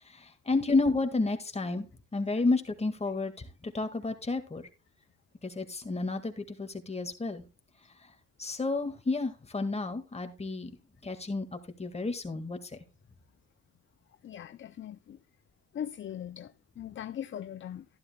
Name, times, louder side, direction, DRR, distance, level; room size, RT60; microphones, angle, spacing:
voice 1, 0.1-1.9 2.1-4.6 5.4-7.4 8.4-10.7 11.0-12.7, left 3 dB, 20° left, 1.8 m, -31 dB
voice 2, 14.2-15.2 15.7-17.9, left 10 dB, 40° left, 0.5 m, -40 dB
12.5 x 11.5 x 2.2 m
cardioid pair, 90°, 30 cm